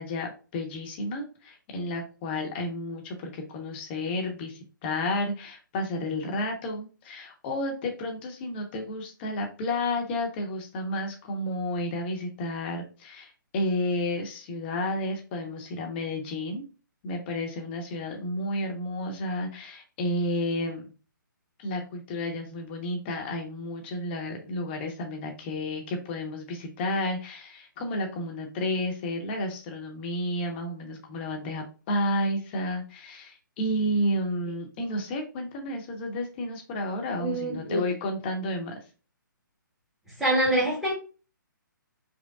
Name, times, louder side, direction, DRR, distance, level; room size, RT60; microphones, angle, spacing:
voice 1, 0.0-16.6 17.0-20.9 21.6-38.7, left 1 dB, 30° left, 2 dB, 1.0 m, -31 dB
voice 2, 37.2-37.8 40.2-40.9, right 1 dB, 5° right, -6 dB, 1.2 m, -25 dB
5.3 x 2.2 x 2.4 m, 0.35 s
figure-of-eight pair, 140°, 11 cm